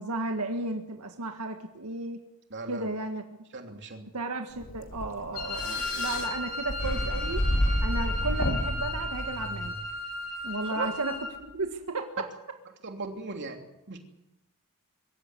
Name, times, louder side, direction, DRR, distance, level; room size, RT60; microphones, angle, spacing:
voice 1, 0.0-2.2 2.7-3.2 4.1-7.4 7.8-9.7 10.4-11.1 11.5-12.3, right 2 dB, 80° right, 4 dB, 1.7 m, -34 dB
voice 2, 2.5-2.9 3.5-4.1 10.6-10.9 12.8-14.0, right 3 dB, 55° right, 3 dB, 3.0 m, -37 dB
sound 1, 4.6-9.7, equal, 60° left, 3.1 m, -30 dB
Wind instrument woodwind instrument, 5.3-11.4, left 2 dB, 40° left, 3.6 m, -35 dB
24.0 x 14.0 x 9.7 m, 0.95 s
head